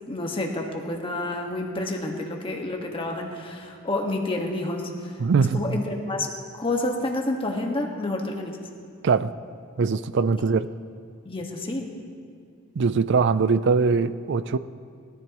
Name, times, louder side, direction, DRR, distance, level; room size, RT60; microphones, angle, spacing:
voice 1, 0.1-6.3 6.6-8.6 11.2-11.9, left 2 dB, 25° left, 1 dB, 1.5 m, -29 dB
voice 2, 5.2-5.6 9.0-9.3 9.8-10.7 12.8-14.6, right 5 dB, 60° right, 14 dB, 0.4 m, -21 dB
21.0 x 13.5 x 3.0 m, 2.3 s
head